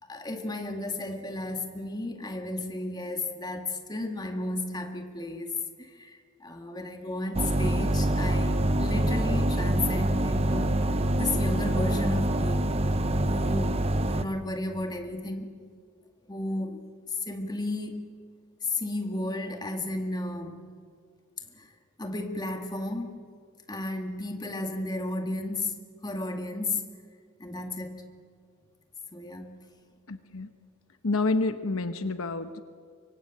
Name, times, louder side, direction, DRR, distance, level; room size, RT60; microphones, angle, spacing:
voice 1, 0.0-12.6 13.2-15.5 16.3-18.1 18.6-20.6 21.5-21.7 22.0-23.2 23.7-26.9 27.4-28.1 29.1-29.6, left 2 dB, 20° left, 4 dB, 2.0 m, -33 dB
sound 1, 7.3-14.2, right 1 dB, 30° right, 0.9 m, -25 dB
voice 2, 30.1-30.5 31.0-32.6, left 3 dB, 70° left, 10 dB, 1.1 m, -28 dB
24.0 x 24.0 x 9.0 m, 2.1 s
head